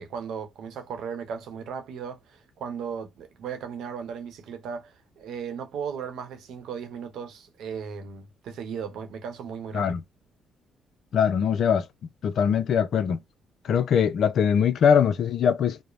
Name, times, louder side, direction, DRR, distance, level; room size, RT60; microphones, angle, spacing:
voice 1, 0.0-9.9, right 7 dB, 80° right, 0.8 m, -36 dB
voice 2, 11.1-11.9 12.2-13.2 13.6-15.8, left 7 dB, 65° left, 0.4 m, -22 dB
3.1 x 2.0 x 2.5 m
cardioid pair, 90°, 0 cm